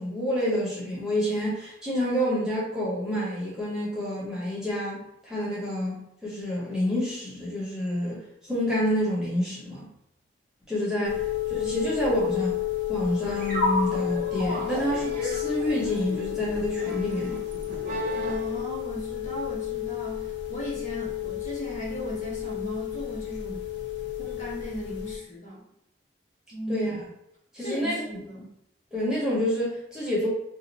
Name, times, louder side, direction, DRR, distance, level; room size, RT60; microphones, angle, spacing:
voice 1, 0.0-9.9 10.7-11.2 11.5-12.6 12.9-17.4 26.7-26.9 27.5-28.2 28.9-30.3, equal, 5° right, -8 dB, 0.9 m, -28 dB
sound 1, 11.0-25.2, left 14 dB, 75° left, 0.5 m, -32 dB
sound 2, 13.2-18.6, equal, 45° right, 0.8 m, -33 dB
voice 2, 18.1-23.7 24.2-25.6 26.5-26.9 27.6-28.5, equal, 40° left, -5 dB, 1.3 m, -37 dB
2.5 x 2.5 x 4.1 m, 0.78 s
head